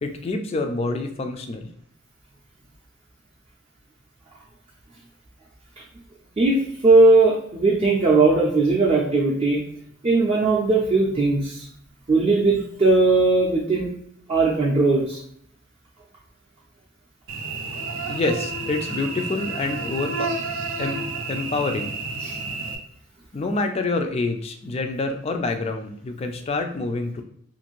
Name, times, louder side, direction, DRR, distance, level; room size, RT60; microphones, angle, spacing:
voice 1, 0.0-1.7 18.1-20.3 20.8-22.0 23.3-27.2, left 3 dB, 30° left, 5 dB, 0.3 m, -27 dB
voice 2, 6.4-9.6 10.0-11.7 12.1-13.9 14.3-15.2 22.2-22.3, right 3 dB, 30° right, -4 dB, 0.4 m, -18 dB
Cricket / Buzz, 17.3-22.8, right 3 dB, 85° right, 0.4 m, -30 dB
2.5 x 2.5 x 2.9 m, 0.70 s
head